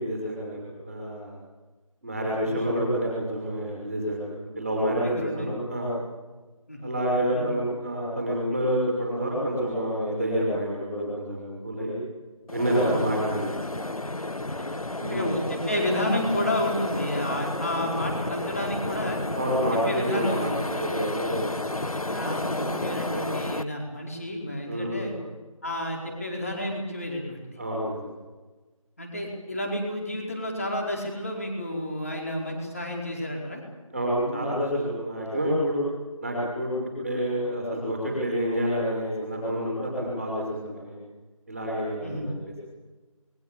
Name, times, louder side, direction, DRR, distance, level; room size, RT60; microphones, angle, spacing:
voice 1, 0.0-1.4 2.0-5.9 6.8-11.9 12.5-13.4 14.9-15.2 19.3-21.8 24.7-25.1 27.6-28.1 33.9-35.8 36.2-36.7 37.0-41.0 41.5-42.3, equal, ahead, -17 dB, 4.4 m, -28 dB
voice 2, 5.0-5.5 6.7-6.9 7.3-7.5 12.8-13.0 14.5-14.6 15.1-19.2 19.9-20.6 22.1-25.1 25.6-27.6 29.0-33.6 34.2-34.6 42.0-42.3, left 1 dB, 25° left, 0 dB, 4.7 m, -31 dB
sound 1, 12.5-23.6, left 2 dB, 85° left, 1.7 m, -32 dB
28.0 x 22.0 x 7.2 m, 1.2 s
figure-of-eight pair, 180°, 18 cm